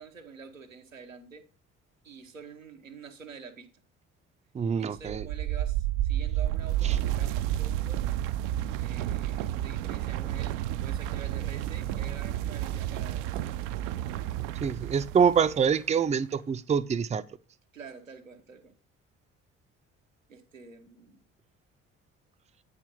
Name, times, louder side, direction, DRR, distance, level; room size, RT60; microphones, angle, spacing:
voice 1, 0.0-1.4 2.0-3.7 4.8-8.1 8.8-13.5 17.7-18.7 20.3-21.2, right 5 dB, 90° right, 0.9 m, -47 dB
voice 2, 4.5-5.3 6.8-7.0 14.6-17.2, right 7 dB, 20° right, 0.5 m, -25 dB
sound 1, 5.0-15.8, right 13 dB, 70° right, 0.5 m, -31 dB
8.9 x 5.0 x 5.5 m
figure-of-eight pair, 45°, 38 cm